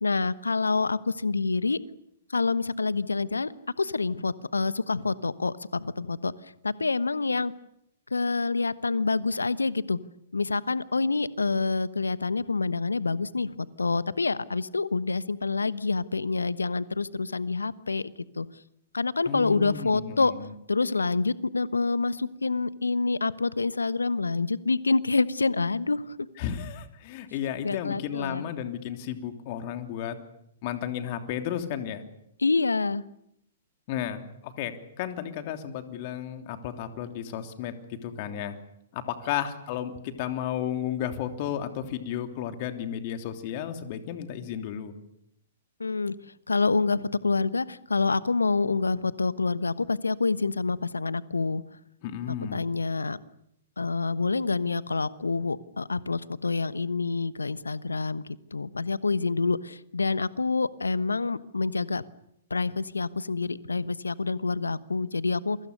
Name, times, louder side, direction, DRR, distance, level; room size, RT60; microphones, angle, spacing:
voice 1, 0.0-1.8 2.3-3.5 3.8-6.3 6.6-7.5 8.1-10.0 10.3-18.5 18.9-20.3 20.7-26.2 27.6-28.5 32.4-33.0 45.8-46.1 46.5-51.6 52.3-53.2 53.8-62.0 62.5-65.6, left 4 dB, 80° left, 16 dB, 1.1 m, -27 dB
voice 2, 19.3-20.5 26.4-30.2 30.6-32.0 33.9-38.6 38.9-44.9 52.0-52.6, left 10 dB, 45° left, 6 dB, 3.0 m, -33 dB
28.5 x 23.5 x 6.7 m, 0.76 s
figure-of-eight pair, 115°, 0 cm